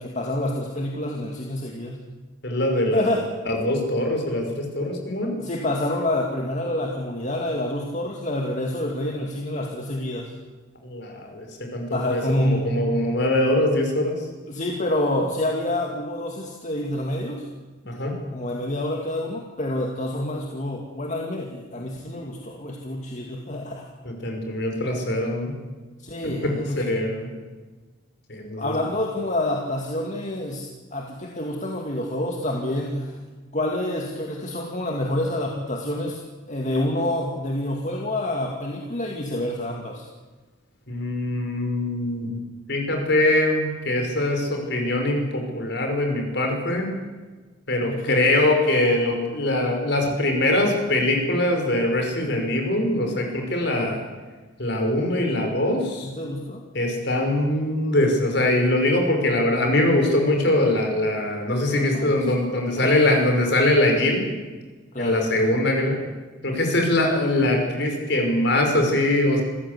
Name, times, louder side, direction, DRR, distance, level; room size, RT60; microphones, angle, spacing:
voice 1, 0.0-2.0 2.9-3.3 5.4-10.3 11.9-12.7 14.5-17.5 18.3-23.9 26.0-27.0 28.6-33.2 33.5-36.2 36.5-40.1 47.8-48.2 53.7-53.9 56.0-56.6 61.7-63.1 64.9-65.5 66.9-67.0, left 1 dB, 35° left, 0 dB, 2.3 m, -28 dB
voice 2, 2.4-3.1 3.5-5.4 10.8-11.5 11.7-14.1 17.9-18.2 24.0-25.6 26.2-27.3 28.3-28.8 40.9-42.3 42.7-46.9 47.7-54.0 54.6-56.1 56.7-64.2 65.0-66.0 66.4-69.4, left 1 dB, 55° left, 3 dB, 5.6 m, -22 dB
26.5 x 15.5 x 8.3 m, 1.3 s
head